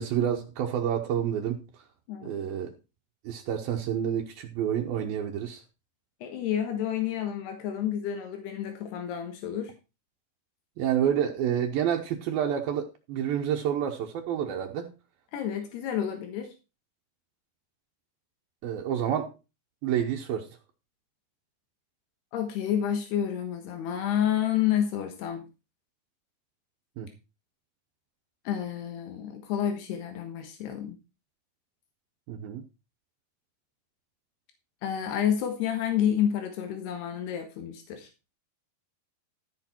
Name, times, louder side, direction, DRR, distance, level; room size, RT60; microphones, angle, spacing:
voice 1, 0.0-1.8 2.2-2.7 3.2-5.6 10.8-14.9 18.6-19.3 19.8-20.5 27.0-27.1 32.3-32.7, right 9 dB, 75° right, 2.7 m, -29 dB
voice 2, 6.2-9.7 15.3-16.5 22.3-25.4 28.5-31.0 34.8-38.1, left 9 dB, 85° left, 3.5 m, -29 dB
14.5 x 6.6 x 4.4 m
omnidirectional pair, 4.6 m